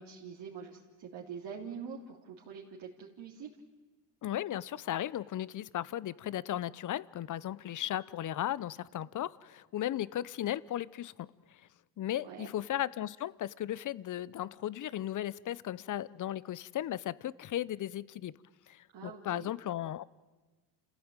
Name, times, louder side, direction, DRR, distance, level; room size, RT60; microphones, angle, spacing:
voice 1, 0.0-3.5 12.2-12.5 18.9-19.5, right 6 dB, 55° right, 3.4 m, -45 dB
voice 2, 4.2-11.3 12.0-18.3 18.7-20.0, left 12 dB, 40° left, 0.8 m, -36 dB
29.0 x 16.0 x 9.0 m
supercardioid pair, 85°, 48 cm